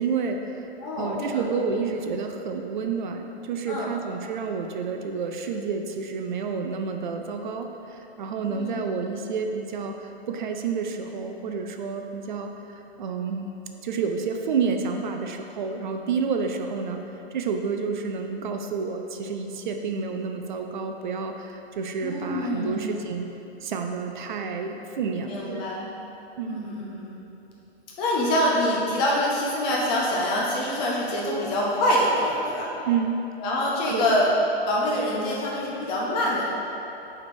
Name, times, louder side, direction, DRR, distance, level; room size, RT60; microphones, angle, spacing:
voice 1, 0.0-0.7 1.0-13.5 13.8-17.0 17.3-23.3 23.6-25.6 26.4-26.6 32.9-33.2 33.9-34.2, right 5 dB, 50° right, 4 dB, 0.5 m, -29 dB
voice 2, 0.8-1.4 3.7-3.9 8.5-8.8 22.0-22.9 25.3-25.9 26.5-27.1 28.0-32.7 33.4-34.3 34.6-36.4, left 1 dB, 15° left, -4 dB, 0.5 m, -25 dB
5.0 x 4.3 x 6.0 m, 2.9 s
hypercardioid pair, 155°, 32 cm